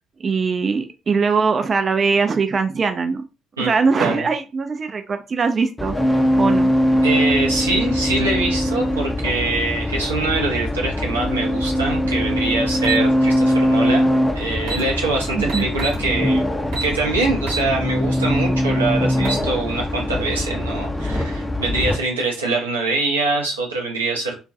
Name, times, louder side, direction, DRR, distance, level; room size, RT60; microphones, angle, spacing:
voice 1, 0.2-3.2 3.6-5.9 6.4-7.1 15.3-15.6, right 5 dB, 40° right, 7 dB, 0.3 m, -21 dB
sound 1, 5.8-22.0, equal, 15° left, 0.6 m, -21 dB
voice 2, 7.0-16.5 16.8-24.4, right 3 dB, 85° right, -1 dB, 0.6 m, -24 dB
sound 2, 12.8-13.0 14.2-14.3 14.6-14.8 15.5-16.0 16.7-16.9 17.5-17.7 18.1-18.2 19.0-19.4, right 3 dB, 70° right, 1.1 m, -27 dB
2.3 x 2.2 x 2.6 m, 0.30 s
figure-of-eight pair, 45°, 0 cm